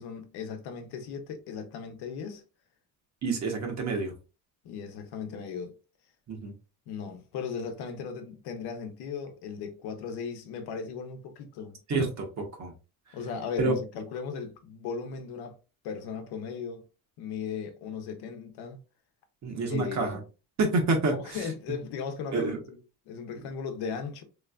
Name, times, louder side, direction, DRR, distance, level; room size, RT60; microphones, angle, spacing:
voice 1, 0.0-2.4 4.6-5.7 6.9-11.8 13.1-15.6 15.8-16.9 17.2-18.8 19.7-20.2 21.1-22.8 23.1-24.2, left 6 dB, 80° left, 0.9 m, -37 dB
voice 2, 3.2-4.1 6.3-6.5 11.9-12.7 13.6-13.7 19.4-20.2 20.6-21.2 22.3-22.6, right 3 dB, 45° right, 1.1 m, -28 dB
3.3 x 3.1 x 2.4 m
cardioid pair, 120°, 39 cm